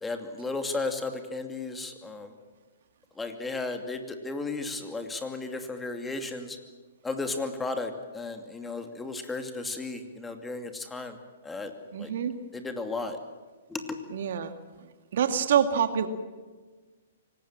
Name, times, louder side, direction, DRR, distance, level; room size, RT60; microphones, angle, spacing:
voice 1, 0.0-2.3 3.2-6.6 7.0-11.2 11.4-11.7 12.0-12.1 12.5-13.2 13.7-14.0, left 3 dB, 10° left, 6 dB, 2.5 m, -34 dB
voice 2, 11.9-12.4 14.1-14.5 15.1-16.1, right 8 dB, 60° right, 8 dB, 2.1 m, -25 dB
25.5 x 19.5 x 7.5 m, 1.3 s
hypercardioid pair, 125°, 0 cm